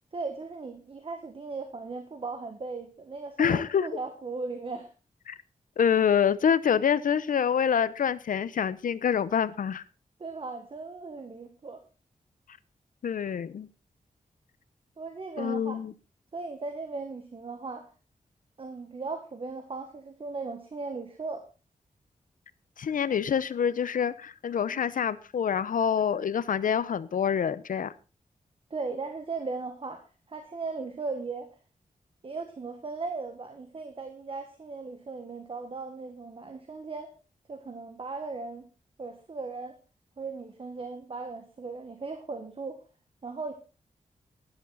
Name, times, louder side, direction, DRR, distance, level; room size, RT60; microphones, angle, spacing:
voice 1, 0.1-4.9 10.2-11.8 15.0-15.8 16.3-17.9 18.6-21.4 24.7-24.8 28.7-31.5 32.2-37.1 37.5-38.6 39.0-39.8 40.2-42.8 43.2-43.5, right 3 dB, 40° right, 7 dB, 1.6 m, -37 dB
voice 2, 3.4-3.9 5.3-5.4 5.8-9.8 13.0-13.7 15.4-15.9 22.8-27.9, left 7 dB, 75° left, 17 dB, 0.8 m, -26 dB
13.5 x 11.0 x 4.0 m, 0.32 s
wide cardioid pair, 125°, 14 cm